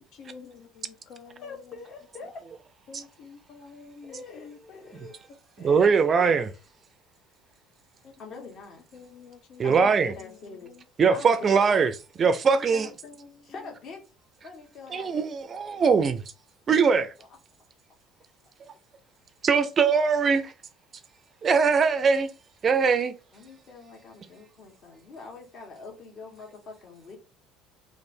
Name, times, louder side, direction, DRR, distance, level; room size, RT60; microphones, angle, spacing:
voice 1, 0.1-1.5 2.9-4.8 8.0-8.5 8.9-9.9 10.7-10.8 12.5-13.5, left 5 dB, 65° left, 0.7 m, -48 dB
voice 2, 1.2-2.3 4.0-5.2 5.6-6.5 8.2-9.0 9.6-10.7 11.0-11.8 12.7-12.9 13.4-14.0 14.4-15.1 15.7-15.9 17.2-17.3 23.3-27.2, left 4 dB, 45° left, 1.6 m, -44 dB
voice 3, 5.6-6.5 9.6-10.1 11.0-11.9 12.2-12.9 14.9-16.2 16.7-17.1 19.4-20.5 21.4-22.3 22.6-23.1, right 5 dB, 30° right, 0.4 m, -21 dB
3.1 x 2.4 x 4.3 m
cardioid pair, 125°, 0 cm